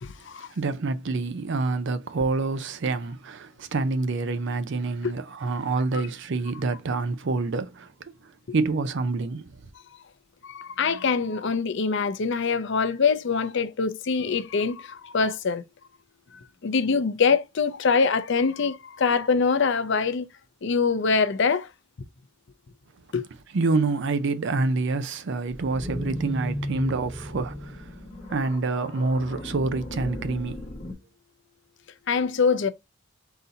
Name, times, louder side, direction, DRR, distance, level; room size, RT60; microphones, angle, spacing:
voice 1, 0.0-0.5 5.0-5.1 5.9-6.0 10.4-15.6 16.6-20.2 20.6-21.7 23.1-23.2 32.1-32.7, left 5 dB, 60° left, 0.5 m, -24 dB
voice 2, 0.6-7.9 8.5-9.5 23.5-27.9 28.3-30.7, right 3 dB, 60° right, 0.5 m, -27 dB
sound 1, 25.5-30.9, equal, 25° left, 0.9 m, -35 dB
3.9 x 2.8 x 3.9 m
head